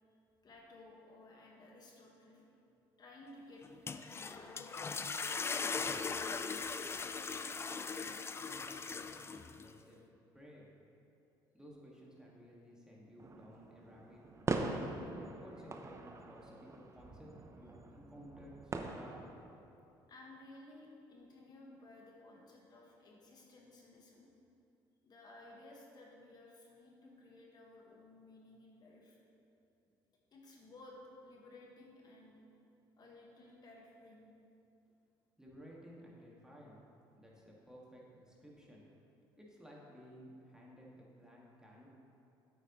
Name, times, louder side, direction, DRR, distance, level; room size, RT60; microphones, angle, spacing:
voice 1, 0.4-2.4 3.0-7.7 20.1-24.3 25.0-29.2 30.3-31.0 31.2-32.4 33.0-34.3, left 2 dB, 40° left, -2 dB, 1.5 m, -57 dB
sound 1, 3.6-9.7, left 5 dB, 25° left, 0.4 m, -39 dB
voice 2, 8.4-10.0 10.3-10.7 11.5-14.2 14.5-14.8 15.4-19.2 35.4-36.8 37.1-38.8 39.4-41.9, equal, 5° right, -4 dB, 1.8 m, -56 dB
sound 2, 13.2-19.6, right 3 dB, 30° right, 0.7 m, -42 dB
9.2 x 8.1 x 3.0 m, 2.8 s
supercardioid pair, 80°, 10 cm